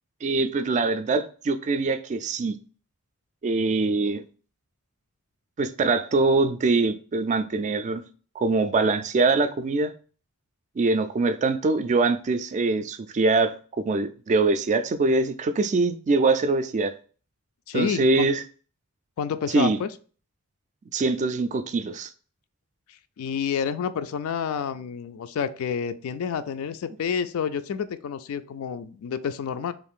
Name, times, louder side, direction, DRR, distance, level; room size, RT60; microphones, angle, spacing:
voice 1, 0.2-2.5 3.4-4.2 5.6-8.0 8.4-9.9 10.8-13.5 13.9-16.9 17.7-18.4 19.5-19.8 20.9-22.1, right 3 dB, 35° right, 0.3 m, -23 dB
voice 2, 17.7-18.3 19.2-19.9 23.2-29.7, left 7 dB, 65° left, 0.3 m, -29 dB
3.5 x 2.4 x 3.6 m
head